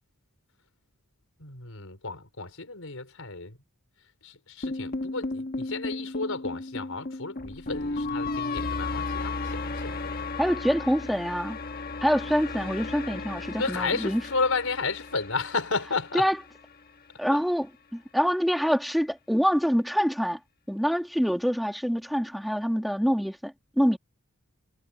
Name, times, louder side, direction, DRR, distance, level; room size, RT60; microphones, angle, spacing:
voice 1, 1.4-3.6 4.2-10.3 13.6-16.3 17.3-17.4, left 4 dB, 75° left, 5.0 m, -32 dB
sound 1, 4.6-16.8, left 3 dB, 45° left, 1.5 m, -34 dB
voice 2, 10.4-11.6 12.0-14.2 16.1-16.3 17.2-20.4 20.7-24.0, equal, ahead, 2.8 m, -25 dB
head